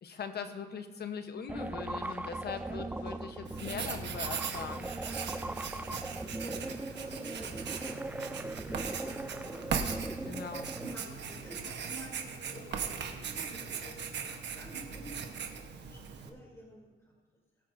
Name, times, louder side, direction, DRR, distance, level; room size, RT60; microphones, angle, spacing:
voice 1, 0.0-4.9 10.2-10.7, left 6 dB, 55° left, 7 dB, 1.1 m, -40 dB
sound 1, 1.5-11.0, right 2 dB, 10° right, 0.3 m, -39 dB
sound 2, 1.8-15.5, left 2 dB, 80° left, 2.4 m, -54 dB
Writing, 3.5-16.3, right 6 dB, 60° right, 1.3 m, -39 dB
voice 2, 6.4-9.9 10.7-17.1, right 1 dB, 15° left, -3 dB, 3.2 m, -50 dB
21.0 x 8.7 x 2.7 m, 1.4 s
cardioid pair, 90°, 20 cm